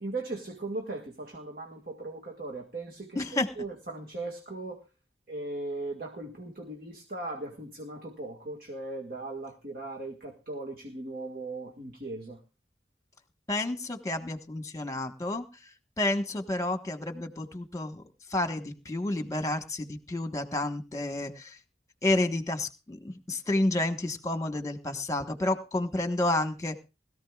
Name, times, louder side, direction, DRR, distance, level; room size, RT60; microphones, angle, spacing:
voice 1, 0.0-4.8 5.3-12.4, right 2 dB, 55° right, 1 dB, 1.8 m, -38 dB
voice 2, 3.1-3.5 13.5-15.4 16.0-18.0 18.3-21.6 22.0-26.8, left 2 dB, 20° left, 7 dB, 1.3 m, -30 dB
21.0 x 14.5 x 2.4 m, 0.31 s
head